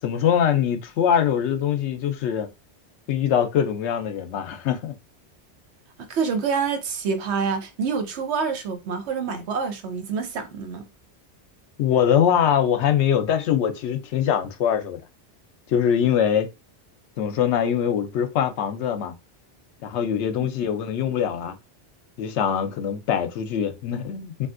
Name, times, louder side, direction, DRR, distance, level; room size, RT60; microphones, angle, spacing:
voice 1, 0.0-2.5 3.1-4.9 11.8-15.0 15.7-16.5 17.2-19.1 19.8-21.5 22.2-24.5, left 9 dB, 80° left, 0.9 m, -23 dB
voice 2, 6.1-10.9, right 5 dB, 75° right, 1.0 m, -27 dB
3.3 x 2.6 x 2.5 m
omnidirectional pair, 1.2 m